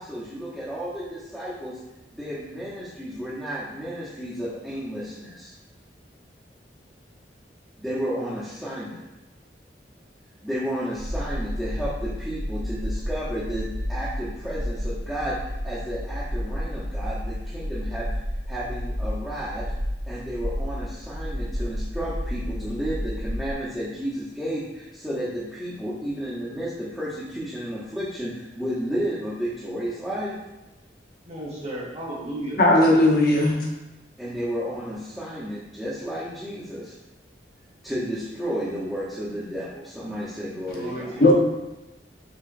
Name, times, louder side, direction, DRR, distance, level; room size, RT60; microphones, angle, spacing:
voice 1, 0.0-1.8 2.1-5.5 7.8-9.0 10.4-15.4 15.6-18.1 18.5-19.6 20.1-30.4 34.2-36.9 37.8-41.2, equal, ahead, -10 dB, 0.7 m, -32 dB
sound 1, 10.9-23.5, equal, 80° right, 1.0 m, -31 dB
voice 2, 31.2-32.6 40.7-41.3, right 1 dB, 35° right, -4 dB, 1.2 m, -34 dB
voice 3, 32.6-33.7 41.2-41.3, left 1 dB, 55° left, -2 dB, 0.9 m, -17 dB
5.7 x 3.7 x 2.5 m, 1.0 s
head